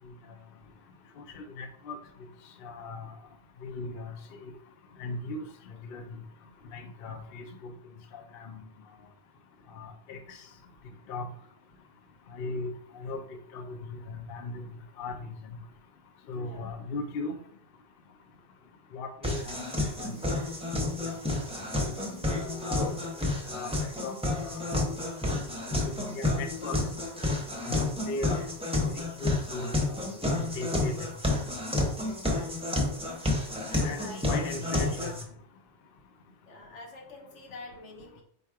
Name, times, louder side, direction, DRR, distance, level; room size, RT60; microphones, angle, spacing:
voice 1, 1.3-2.0 2.6-3.1 3.6-4.1 4.4-4.5 5.0-5.4 5.9-6.0 6.7-7.4 8.1-8.6 9.7-10.4 11.1-11.3 12.3-12.7 12.9-13.2 13.5-14.6 15.0-15.2 16.3-17.4 18.9-19.5 20.0-20.1 22.4-23.0 23.5-23.7 24.0-24.8 25.8-26.8 27.6-28.4 28.9-30.0 30.3-31.0 33.8-35.1, left 3 dB, 60° left, 5 dB, 0.7 m, -37 dB
voice 2, 16.4-16.8 32.2-32.8 33.7-35.1 36.5-38.2, left 2 dB, 90° left, 0 dB, 1.3 m, -46 dB
sound 1, 19.2-35.2, left 2 dB, 5° right, 0.6 m, -30 dB
4.1 x 2.3 x 4.6 m, 0.66 s
omnidirectional pair, 1.2 m